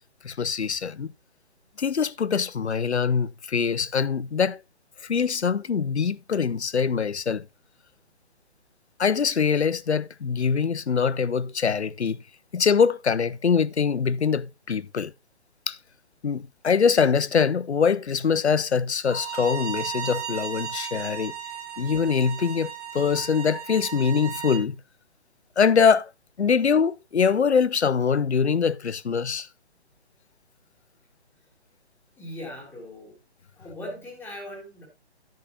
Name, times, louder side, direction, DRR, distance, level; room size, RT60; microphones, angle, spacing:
voice 1, 0.2-1.1 1.8-4.6 5.0-7.4 9.0-12.2 12.5-15.1 15.7-15.8 16.2-21.3 21.8-24.8 25.6-26.1 26.4-29.5, left 6 dB, 80° left, 0.6 m, -23 dB
Bowed string instrument, 19.1-24.6, right 9 dB, 35° right, 1.5 m, -35 dB
voice 2, 32.2-33.2 33.6-34.8, left 1 dB, 5° left, 1.9 m, -39 dB
10.5 x 8.6 x 2.8 m
figure-of-eight pair, 135°, 33 cm